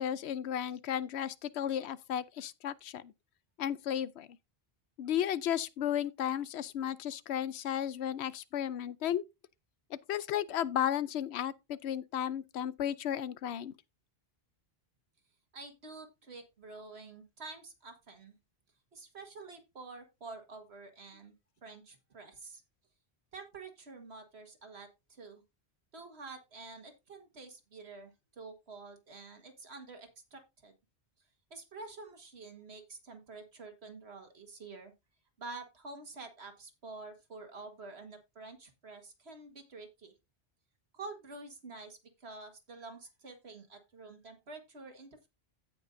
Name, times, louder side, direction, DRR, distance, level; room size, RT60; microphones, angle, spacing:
voice 1, 0.0-3.1 3.6-4.3 5.0-9.2 10.1-13.7, left 10 dB, 85° left, 0.9 m, -34 dB
voice 2, 15.5-18.4 18.9-21.3 21.6-22.6 23.3-25.4 25.9-30.7 31.5-34.9 35.4-40.1 40.9-45.3, right 3 dB, 85° right, 2.0 m, -48 dB
16.0 x 5.4 x 2.6 m
omnidirectional pair, 1.1 m